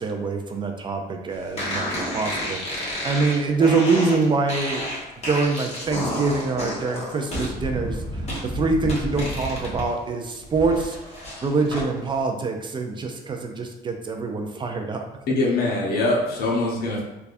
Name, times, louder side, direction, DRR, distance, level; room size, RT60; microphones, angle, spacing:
voice 1, 0.0-2.6 3.0-4.8 5.3-11.0 11.4-15.0, right 4 dB, 30° right, 4 dB, 0.3 m, -24 dB
sound 1, 1.6-9.9 10.2-11.9, equal, 40° left, 1.2 m, -30 dB
voice 2, 15.3-17.0, left 2 dB, 65° left, -2 dB, 0.8 m, -23 dB
3.3 x 2.3 x 2.5 m, 0.98 s
cardioid pair, 110°, 17 cm